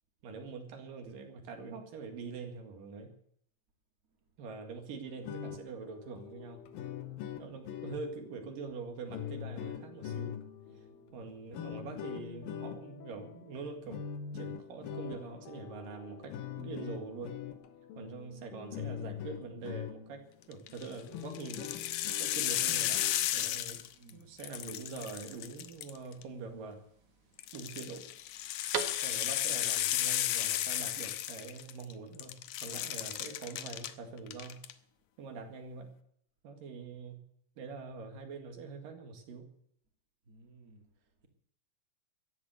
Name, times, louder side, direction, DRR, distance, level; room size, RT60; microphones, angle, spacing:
voice 1, 0.2-3.1 4.4-6.7 7.4-10.4 11.1-14.0 14.3-17.4 18.0-21.8 22.2-23.0 23.3-23.8 24.1-26.8 27.5-28.0 29.0-34.6 35.2-35.9 36.4-37.2 37.6-39.5, right 4 dB, 80° right, 5 dB, 3.7 m, -44 dB
sound 1, 5.1-20.3 20.7-20.8 21.1-23.3, left 9 dB, 90° left, 3.0 m, -43 dB
voice 2, 10.7-11.3 17.9-18.1 23.9-24.3 27.3-27.4 40.3-40.9, right 2 dB, 30° right, 3 dB, 2.5 m, -59 dB
sound 2, 20.5-20.9 21.3-24.1 24.4-26.2 27.4-31.9 32.2-33.9 34.3-34.7, left 12 dB, 70° left, 2.1 m, -34 dB
sound 3, 21.1-29.6, right 7 dB, 65° right, 2.8 m, -47 dB
15.0 x 11.0 x 7.9 m, 0.69 s
omnidirectional pair, 3.9 m